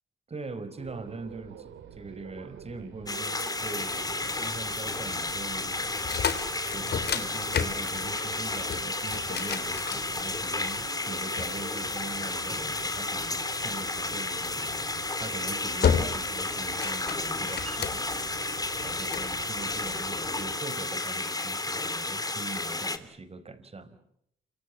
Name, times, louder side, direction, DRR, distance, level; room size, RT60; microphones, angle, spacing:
voice 1, 0.3-6.0 6.7-14.7 15.2-18.2 18.8-24.0, right 3 dB, 30° right, 12 dB, 4.9 m, -42 dB
sound 1, 0.8-20.6, right 9 dB, 75° right, 2.9 m, -47 dB
sound 2, 3.1-23.0, left 2 dB, 20° left, 3.0 m, -32 dB
sound 3, 5.9-10.6 11.4-12.7 14.4-14.7 15.2-15.5 15.8-16.4 16.7-18.2 18.8-19.3, left 7 dB, 55° left, 3.7 m, -31 dB
28.5 x 25.5 x 7.4 m, 0.73 s
cardioid pair, 90°, 20 cm